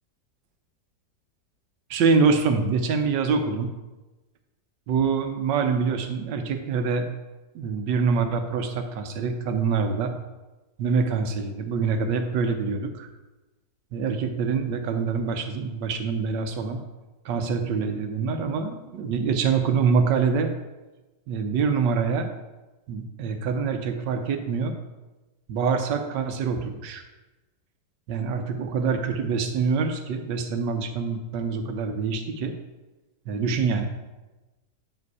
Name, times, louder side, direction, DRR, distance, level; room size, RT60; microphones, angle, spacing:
voice 1, 1.9-3.7 4.9-7.1 7.5-10.1 10.8-13.1 13.9-16.8 17.2-20.6 21.3-22.3 22.9-24.7 25.5-27.0 28.1-32.5 33.3-33.9, right 5 dB, 85° right, 6 dB, 1.5 m, -25 dB
8.6 x 5.0 x 4.7 m, 1.1 s
omnidirectional pair, 1.8 m